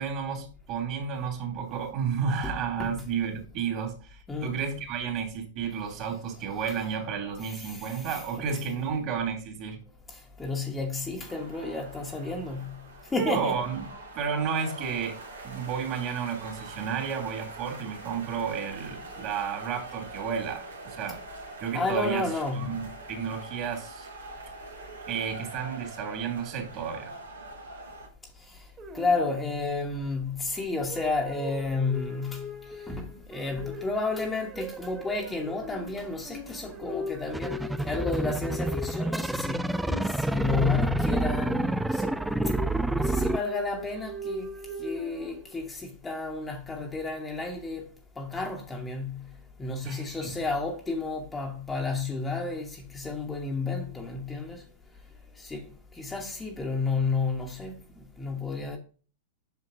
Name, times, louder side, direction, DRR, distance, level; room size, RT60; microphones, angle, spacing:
voice 1, 0.0-9.8 13.2-13.8 14.1-15.2 15.4-21.2 21.6-22.2 22.5-24.1 25.1-27.1 49.8-50.3, right 6 dB, 40° right, 3.0 m, -32 dB
voice 2, 7.4-8.2 8.5-8.6 10.1-13.6 21.7-22.8 28.4-28.7 28.9-42.2 42.4-42.5 43.0-49.3 49.6-54.6 55.4-58.8, left 3 dB, 10° left, 1.3 m, -32 dB
sound 1, 11.3-28.1, right 2 dB, 80° right, 2.1 m, -44 dB
sound 2, 28.8-29.7 30.9-45.7, left 1 dB, 25° right, 1.9 m, -40 dB
sound 3, 37.3-43.4, right 2 dB, 5° right, 0.3 m, -28 dB
8.2 x 6.3 x 2.8 m
figure-of-eight pair, 100°, 0 cm